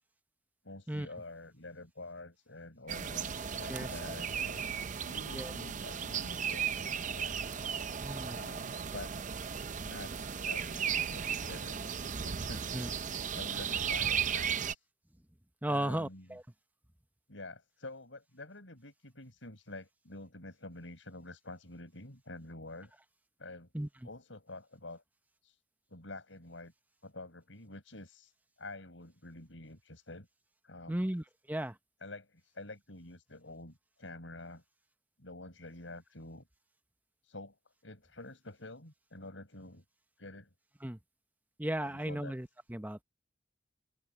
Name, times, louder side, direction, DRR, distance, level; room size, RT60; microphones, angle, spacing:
voice 1, 0.6-7.4 8.3-9.1 9.8-13.1 13.3-14.8 15.7-16.4 17.3-22.9 23.4-23.7 24.0-25.0 25.4-25.6 25.9-26.7 27.0-28.3 28.6-30.3 30.6-31.0 32.0-34.6 35.2-36.5 37.2-37.6 37.8-39.8 40.2-40.5 41.8-42.4, left 2 dB, 85° left, 6.5 m, -48 dB
sound 1, 2.9-14.7, right 7 dB, 40° right, 0.6 m, -35 dB
voice 2, 8.0-8.4 12.7-12.9 15.6-16.4 23.7-23.9 30.9-31.8 40.8-41.0 41.6-43.0, right 1 dB, 10° right, 1.0 m, -35 dB
open air
head